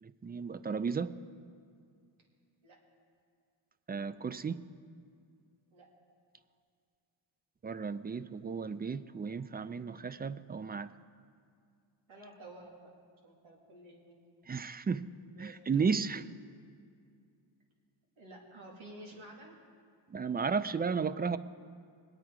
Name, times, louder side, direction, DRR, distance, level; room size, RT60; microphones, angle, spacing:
voice 1, 0.0-1.1 3.9-4.6 7.6-10.9 14.5-15.1 15.4-16.2 20.1-21.4, right 5 dB, 25° right, 14 dB, 0.3 m, -34 dB
voice 2, 12.1-12.8 13.2-14.2 15.3-15.9 18.2-19.6, right 1 dB, 85° right, -2 dB, 2.6 m, -51 dB
21.0 x 8.9 x 4.7 m, 2.3 s
cardioid pair, 80°, 47 cm